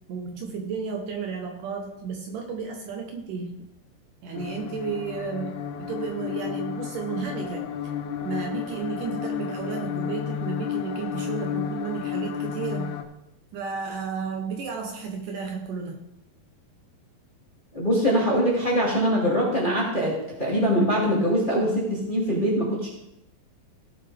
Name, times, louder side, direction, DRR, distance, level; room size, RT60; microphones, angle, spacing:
voice 1, 0.1-3.6 4.2-7.7 8.2-13.0 13.5-16.0, right 5 dB, 70° right, 3 dB, 2.4 m, -33 dB
sound 1, 4.3-13.0, left 9 dB, 85° left, 2.5 m, -32 dB
voice 2, 17.7-22.9, equal, 15° left, -5 dB, 2.2 m, -23 dB
17.0 x 7.5 x 3.4 m, 0.85 s
omnidirectional pair, 4.2 m